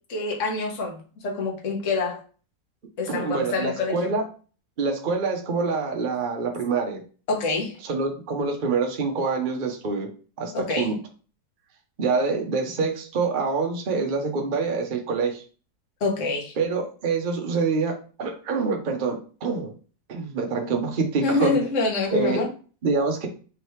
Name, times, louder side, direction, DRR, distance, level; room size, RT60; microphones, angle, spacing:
voice 1, 0.1-1.0 1.2-2.2 3.0-4.1 7.3-7.8 10.5-10.9 16.0-16.5 21.2-22.5, left 3 dB, 50° left, 1.2 m, -26 dB
voice 2, 3.1-4.2 4.8-7.0 7.8-10.1 10.4-11.0 12.0-15.4 16.6-19.7 20.1-21.6 22.1-22.4 22.8-23.3, right 4 dB, 65° right, 0.4 m, -26 dB
3.6 x 3.2 x 3.1 m
omnidirectional pair, 1.9 m